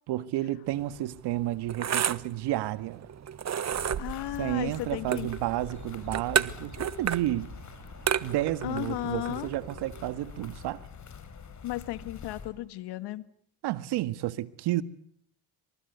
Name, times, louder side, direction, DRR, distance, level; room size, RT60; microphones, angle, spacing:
voice 1, 0.1-3.0 4.4-7.5 8.2-10.8 13.6-14.8, right 15 dB, 70° right, 1.8 m, -31 dB
sound 1, 0.7-10.5, right 8 dB, 40° right, 1.3 m, -33 dB
sound 2, 3.7-12.5, left 6 dB, 45° left, 5.9 m, -45 dB
voice 2, 4.0-5.3 8.6-9.5 11.6-13.3, left 15 dB, 70° left, 1.9 m, -34 dB
28.0 x 26.0 x 8.2 m
supercardioid pair, 80°, 41 cm